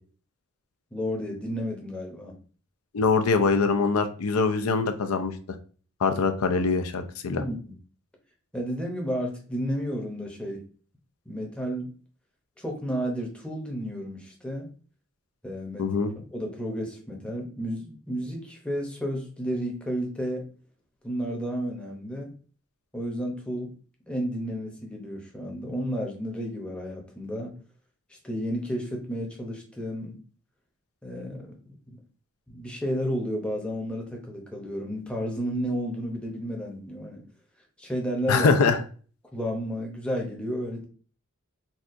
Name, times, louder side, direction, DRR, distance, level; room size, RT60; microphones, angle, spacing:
voice 1, 0.9-2.4 7.2-7.6 8.5-10.6 11.3-11.9 12.6-14.7 15.4-15.9 16.2-20.5 21.0-22.3 22.9-23.7 24.1-27.5 28.2-30.2 31.0-31.6 31.9-32.0 32.5-37.2 37.8-38.5 39.3-40.8, equal, 5° left, 0 dB, 0.7 m, -32 dB
voice 2, 2.9-5.3 6.0-7.4 15.8-16.1 38.3-38.8, left 4 dB, 80° left, 8 dB, 0.5 m, -23 dB
4.1 x 2.3 x 2.5 m, 0.40 s
head